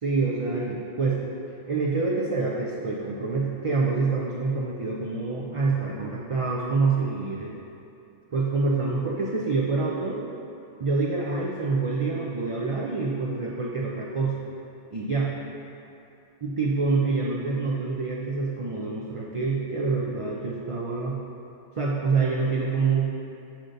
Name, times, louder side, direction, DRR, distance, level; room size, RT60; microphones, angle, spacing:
voice 1, 0.0-1.2 1.7-7.5 8.3-10.2 10.8-14.3 14.9-15.3 16.4-21.2 21.8-23.2, right 4 dB, 55° right, -4 dB, 0.3 m, -26 dB
6.4 x 5.9 x 2.6 m, 2.7 s
omnidirectional pair, 1.2 m